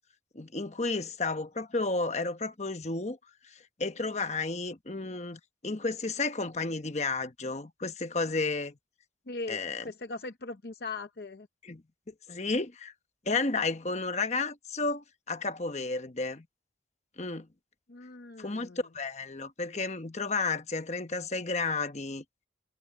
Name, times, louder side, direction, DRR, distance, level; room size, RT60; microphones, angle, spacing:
voice 1, 0.3-3.2 3.8-8.7 9.5-9.8 11.6-11.8 12.3-12.9 13.3-16.4 17.2-17.5 18.4-18.7 18.9-22.2, left 3 dB, 40° left, 1.1 m, -32 dB
voice 2, 9.3-11.5 17.9-18.9, left 3 dB, 55° left, 0.7 m, -40 dB
head